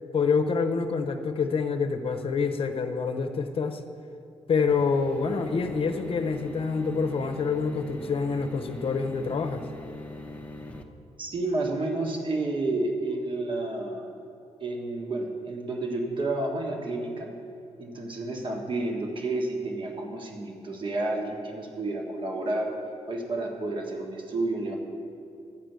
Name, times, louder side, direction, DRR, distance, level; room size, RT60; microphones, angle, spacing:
voice 1, 0.1-3.8 4.5-9.7, left 5 dB, 50° left, 6 dB, 0.8 m, -27 dB
sound 1, 4.7-10.8, left 1 dB, 10° left, 0.7 m, -41 dB
voice 2, 11.2-14.0 14.6-17.3 17.8-22.7 23.1-24.8, right 2 dB, 45° right, 1 dB, 1.4 m, -30 dB
12.0 x 5.0 x 8.0 m, 2.7 s
cardioid pair, 120°, 12 cm